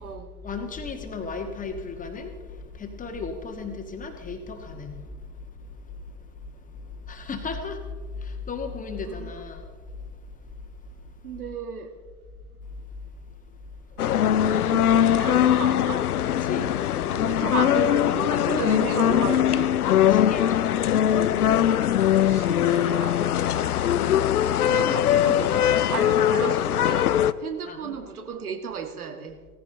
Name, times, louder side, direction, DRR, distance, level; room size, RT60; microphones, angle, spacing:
voice 1, 0.4-11.1 12.8-12.9 13.3-13.6 13.9-14.0 16.2-17.7 20.1-21.5 21.9-22.4 24.7-25.0 27.6-28.0, left 4 dB, 15° left, 1.5 m, -37 dB
voice 2, 11.2-11.9 13.9-16.1 17.2-19.7 22.2-24.2 24.7-27.1 27.4-29.4, right 6 dB, 65° right, 1.7 m, -34 dB
sound 1, 14.0-27.3, left 10 dB, 70° left, 0.6 m, -21 dB
17.5 x 15.0 x 3.8 m
figure-of-eight pair, 90°, 46 cm